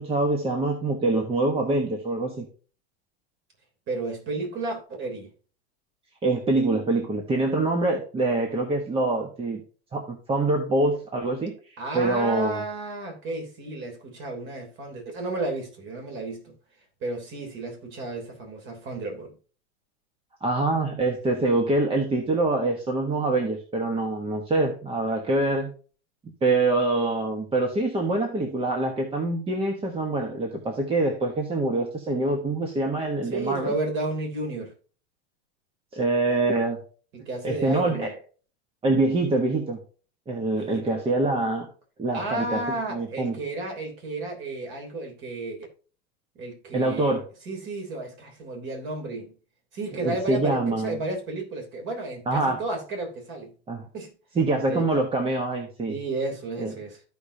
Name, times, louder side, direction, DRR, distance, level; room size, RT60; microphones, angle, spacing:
voice 1, 0.0-2.5 6.2-9.6 9.9-12.6 20.4-25.7 26.4-33.7 35.9-36.8 37.4-38.1 38.8-39.8 40.3-41.7 42.0-43.4 46.7-47.2 50.0-51.0 52.3-52.6 53.7-53.9 54.3-55.9 56.6-56.7, right 2 dB, 15° right, 1.3 m, -25 dB
voice 2, 3.9-5.3 11.8-16.6 17.0-19.4 33.3-34.7 37.1-38.1 40.6-41.0 42.1-45.7 46.3-47.2 47.4-49.3 49.7-53.5 53.9-54.1 54.6-54.9 55.9-57.0, right 2 dB, 35° right, 3.3 m, -32 dB
14.0 x 5.1 x 2.8 m
supercardioid pair, 145°, 32 cm